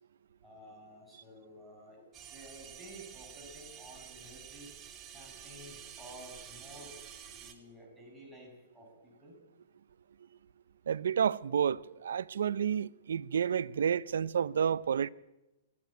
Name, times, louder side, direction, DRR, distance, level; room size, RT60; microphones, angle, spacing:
voice 1, 0.4-4.7 5.1-7.0 7.4-9.4, equal, ahead, 6.9 m, -52 dB
sound 1, 2.1-7.5, right 8 dB, 25° right, 2.2 m, -49 dB
voice 2, 10.9-15.1, right 8 dB, 85° right, 0.6 m, -30 dB
22.5 x 14.0 x 9.3 m
hypercardioid pair, 145°, 0 cm